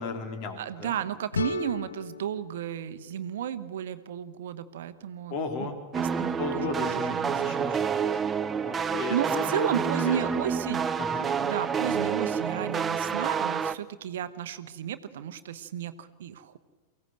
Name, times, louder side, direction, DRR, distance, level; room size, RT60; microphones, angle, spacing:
voice 1, 0.0-0.9 5.3-5.8 6.4-8.3 8.6-10.2 11.0-11.3, left 4 dB, 40° left, 6 dB, 3.2 m, -35 dB
voice 2, 0.6-5.7 5.9-7.8 9.1-10.9 11.4-16.6, right 10 dB, 60° right, 12 dB, 0.9 m, -33 dB
sound 1, 1.3-4.2, left 5 dB, 75° left, 0.6 m, -37 dB
sound 2, 5.9-13.8, right 6 dB, 20° right, 0.7 m, -28 dB
24.0 x 16.5 x 7.8 m, 1.3 s
figure-of-eight pair, 95°, 0 cm